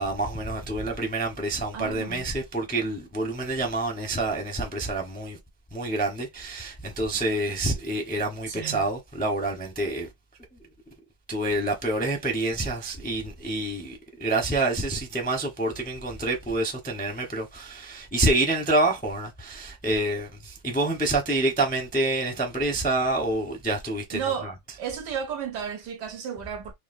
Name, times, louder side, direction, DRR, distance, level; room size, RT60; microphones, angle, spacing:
voice 1, 0.0-5.4 5.7-10.1 11.3-24.2, right 2 dB, 10° left, 0.5 m, -27 dB
voice 2, 1.7-2.3 8.5-8.8 24.1-24.5 24.8-26.7, right 8 dB, 70° right, 1.1 m, -33 dB
5.8 x 2.4 x 2.6 m
omnidirectional pair, 2.1 m